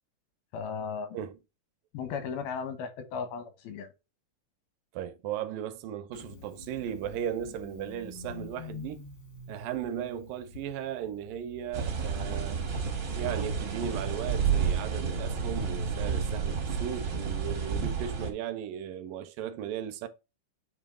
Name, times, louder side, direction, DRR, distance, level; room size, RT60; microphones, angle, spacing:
voice 1, 0.5-1.2 1.9-3.9, left 6 dB, 85° left, 3.0 m, -36 dB
voice 2, 4.9-9.1 9.5-12.6 13.2-20.1, right 10 dB, 75° right, 2.2 m, -36 dB
Engine starting, 6.1-12.6, left 4 dB, 65° left, 1.1 m, -47 dB
sound 1, 11.7-18.3, right 6 dB, 55° right, 1.2 m, -30 dB
9.1 x 3.1 x 3.6 m
omnidirectional pair, 4.2 m